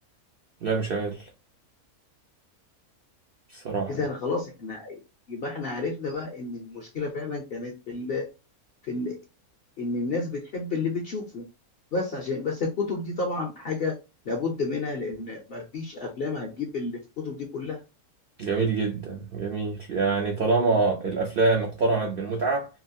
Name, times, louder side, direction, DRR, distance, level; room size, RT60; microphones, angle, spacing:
voice 1, 0.6-1.3 3.5-3.9 18.4-22.7, right 3 dB, 75° right, 0.5 m, -25 dB
voice 2, 3.9-5.0 5.3-8.3 8.8-9.2 9.8-11.4 11.9-14.0 14.2-17.8, left 3 dB, 65° left, 0.6 m, -31 dB
2.9 x 2.3 x 2.6 m
omnidirectional pair, 1.6 m